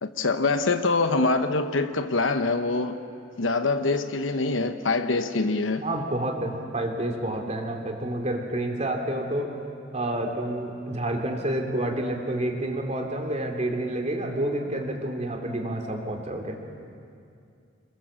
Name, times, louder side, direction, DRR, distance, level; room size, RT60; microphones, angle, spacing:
voice 1, 0.0-3.0 3.4-5.8, left 3 dB, 85° left, 8 dB, 1.0 m, -24 dB
voice 2, 5.8-9.5 9.9-16.6, right 1 dB, 35° right, 3 dB, 2.9 m, -29 dB
28.0 x 21.5 x 7.5 m, 2.4 s
head